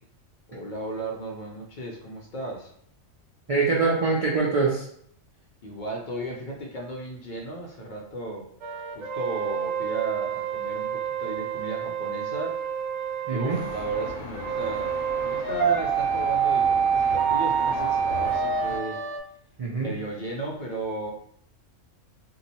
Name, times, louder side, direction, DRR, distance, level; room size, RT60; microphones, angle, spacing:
voice 1, 0.5-2.7 5.6-8.5 8.9-12.6 13.3-19.0 19.8-21.1, right 2 dB, 55° left, 0 dB, 0.5 m, -35 dB
voice 2, 3.5-4.9 13.3-13.6 19.6-19.9, right 4 dB, 55° right, -4 dB, 0.3 m, -24 dB
sound 1, 8.6-19.2, right 7 dB, 80° right, 1.0 m, -27 dB
sound 2, 13.5-18.8, left 3 dB, 70° left, 0.9 m, -39 dB
2.8 x 2.2 x 4.0 m, 0.67 s
omnidirectional pair, 1.4 m